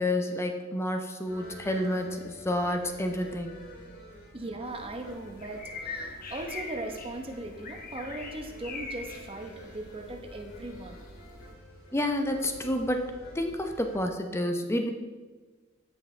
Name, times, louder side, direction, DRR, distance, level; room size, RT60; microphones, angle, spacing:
voice 1, 0.0-3.7 11.9-14.9, left 1 dB, 15° left, 4 dB, 0.7 m, -29 dB
sound 1, 1.3-14.0, equal, 80° left, 2.9 m, -49 dB
voice 2, 4.3-11.0, right 2 dB, 25° right, 4 dB, 0.9 m, -39 dB
sound 2, 4.6-11.5, left 3 dB, 45° left, 1.0 m, -43 dB
15.5 x 5.3 x 3.3 m, 1.3 s
head